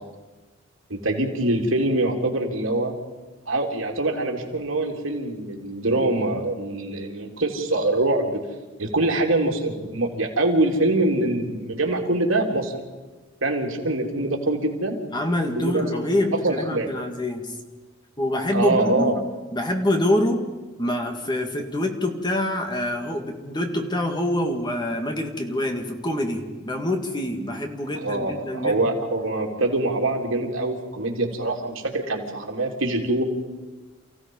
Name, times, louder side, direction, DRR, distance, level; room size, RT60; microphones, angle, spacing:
voice 1, 0.9-2.9 3.5-8.5 8.8-12.8 13.4-15.0 15.5-15.9 16.4-16.9 18.5-19.1 28.0-33.2, right 2 dB, 85° right, 1 dB, 3.2 m, -24 dB
voice 2, 15.1-17.5 18.2-19.1 19.5-20.4 20.8-28.9, left 1 dB, 20° left, 3 dB, 2.3 m, -25 dB
29.0 x 16.0 x 5.5 m, 1.2 s
head